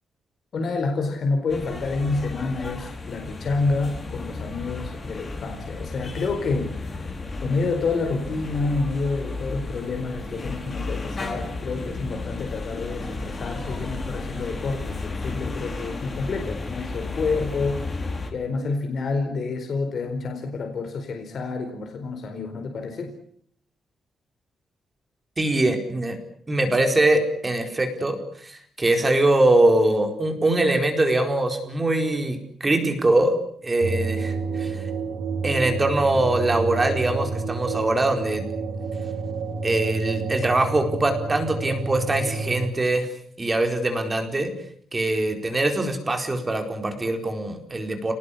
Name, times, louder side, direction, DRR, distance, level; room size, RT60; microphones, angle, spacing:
voice 1, 0.5-7.1 7.4-17.9 18.3-23.1, left 3 dB, 50° left, 4 dB, 4.5 m, -28 dB
sound 1, 1.5-18.3, left 3 dB, 25° left, 4.5 m, -33 dB
voice 2, 25.4-26.2 26.5-33.3 33.6-34.8 35.4-38.4 39.6-43.1 43.4-44.5 44.9-48.1, right 2 dB, 20° right, 5 dB, 4.4 m, -22 dB
sound 2, 33.8-42.7, right 4 dB, 65° right, 3.9 m, -29 dB
30.0 x 19.0 x 8.5 m, 0.64 s
wide cardioid pair, 155°, 0 cm